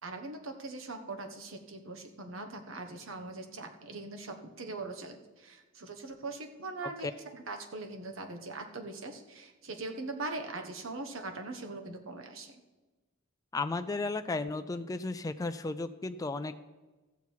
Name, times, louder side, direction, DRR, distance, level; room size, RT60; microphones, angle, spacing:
voice 1, 0.0-12.6, right 3 dB, 70° right, 5 dB, 1.2 m, -41 dB
voice 2, 13.5-16.6, left 3 dB, 15° left, 8 dB, 0.4 m, -34 dB
15.0 x 7.0 x 4.6 m, 1.2 s
head